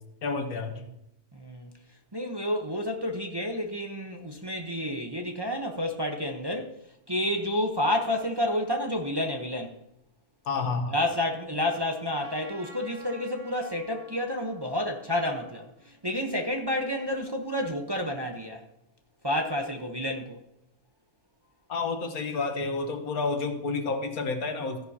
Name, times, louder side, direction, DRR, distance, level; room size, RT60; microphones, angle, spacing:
voice 1, 0.2-0.8 10.4-10.9 21.7-24.9, left 4 dB, 80° left, 6 dB, 1.7 m, -30 dB
voice 2, 1.3-1.7 2.1-6.7 7.1-9.7 10.9-15.7 16.0-18.6 19.2-20.4, left 1 dB, 20° right, 2 dB, 0.8 m, -30 dB
Trumpet, 12.1-16.8, right 2 dB, 70° right, 2.9 m, -52 dB
14.0 x 10.5 x 2.8 m, 0.82 s
omnidirectional pair, 1.5 m